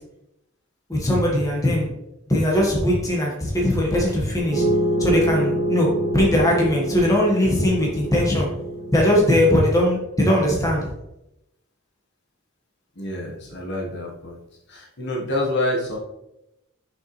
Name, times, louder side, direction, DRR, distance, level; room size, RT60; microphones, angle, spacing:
voice 1, 0.9-1.9 2.3-4.7 5.0-8.5 8.9-10.8, left 1 dB, 15° left, -3 dB, 1.6 m, -20 dB
sound 1, 4.5-9.7, right 1 dB, 15° right, 2.1 m, -26 dB
voice 2, 12.9-14.4 14.7-16.0, left 1 dB, 55° left, -2 dB, 1.5 m, -27 dB
6.8 x 5.8 x 3.3 m, 0.87 s
head